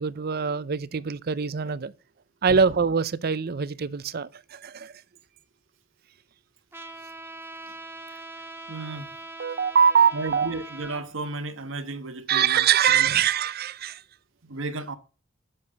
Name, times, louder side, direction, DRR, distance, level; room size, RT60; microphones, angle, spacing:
voice 1, 0.0-1.9 2.4-4.9 9.4-10.5 12.3-14.0, right 7 dB, 50° right, 0.6 m, -23 dB
Trumpet, 6.7-11.0, right 2 dB, 10° right, 1.0 m, -41 dB
voice 2, 8.7-9.1 10.1-12.7 12.9-13.2 14.4-15.0, right 2 dB, 70° right, 1.2 m, -34 dB
10.5 x 6.9 x 6.9 m
head